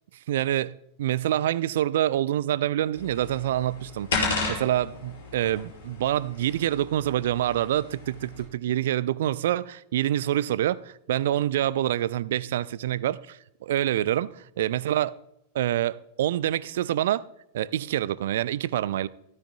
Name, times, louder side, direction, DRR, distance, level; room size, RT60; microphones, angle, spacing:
voice 1, 0.3-0.7 1.0-14.3 14.6-15.1 15.5-17.2 17.5-19.1, right 12 dB, 55° right, 0.4 m, -26 dB
sound 1, 2.9-8.4, left 3 dB, 65° left, 5.3 m, -34 dB
16.0 x 14.0 x 2.3 m
figure-of-eight pair, 90°, 0 cm